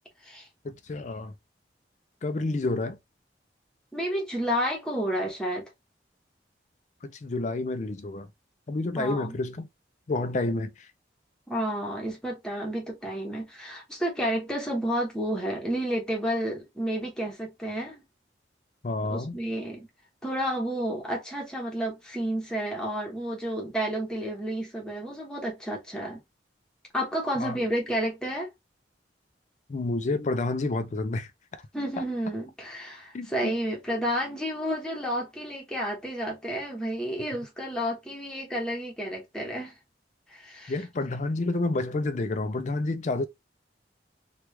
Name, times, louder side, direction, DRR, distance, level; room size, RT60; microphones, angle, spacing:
voice 1, 0.6-1.3 2.2-3.0 7.0-8.3 8.7-9.7 10.1-10.9 18.8-19.4 27.4-27.6 29.7-31.6 33.1-33.5 40.7-43.3, left 2 dB, 40° left, 0.4 m, -29 dB
voice 2, 3.9-5.6 8.9-9.4 11.5-18.0 19.1-19.8 20.2-26.2 26.9-28.5 31.7-39.7 40.3-40.7, equal, 5° left, 0.9 m, -31 dB
3.0 x 2.4 x 3.1 m
head